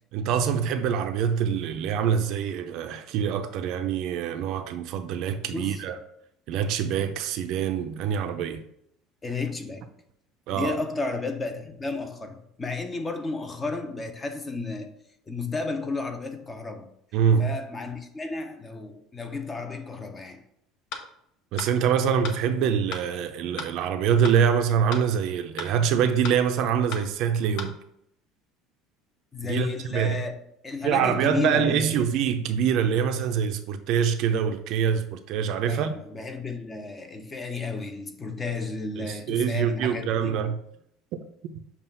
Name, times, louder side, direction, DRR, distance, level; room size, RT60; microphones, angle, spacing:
voice 1, 0.1-6.0 6.5-8.6 10.5-10.7 17.1-17.5 21.5-27.7 29.4-30.2 30.8-36.0 39.0-40.6, right 7 dB, 60° right, 0.5 m, -25 dB
voice 2, 5.4-5.8 9.2-9.9 10.5-14.9 15.3-16.9 17.4-20.4 29.3-30.4 30.6-31.9 35.7-40.4, left 3 dB, 20° left, 0.8 m, -32 dB
sound 1, 20.9-21.0 21.6-21.7 22.2-22.4 22.9-23.0 23.6-23.7 24.2-24.4 24.9-25.0 25.6-25.7 26.2-26.4 26.9-27.0 27.6-27.7, left 5 dB, 60° left, 0.9 m, -34 dB
7.2 x 2.4 x 5.5 m
cardioid pair, 135°, 0 cm